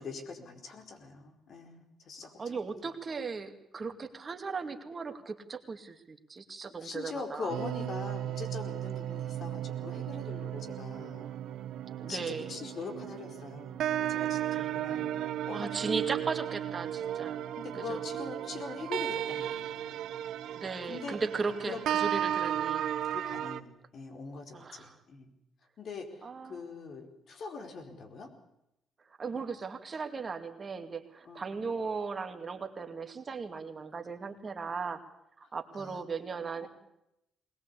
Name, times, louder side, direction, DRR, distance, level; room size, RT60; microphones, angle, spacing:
voice 1, 0.0-2.6 6.6-11.3 12.1-15.1 15.5-16.1 17.6-20.1 20.8-21.2 21.6-21.8 23.1-25.3 25.8-28.3 31.2-31.5 35.7-36.0 36.6-36.7, left 4 dB, 60° left, 4 dB, 4.7 m, -42 dB
voice 2, 2.4-7.5 12.0-12.5 14.5-14.7 15.5-17.4 17.7-18.0 20.6-22.9 24.5-24.9 26.2-26.6 29.2-35.0 35.4-36.7, right 4 dB, 35° right, 6 dB, 2.4 m, -37 dB
sound 1, 7.5-23.6, right 11 dB, 80° right, 1.0 m, -35 dB
21.0 x 20.0 x 8.4 m, 0.83 s
cardioid pair, 90°, 0 cm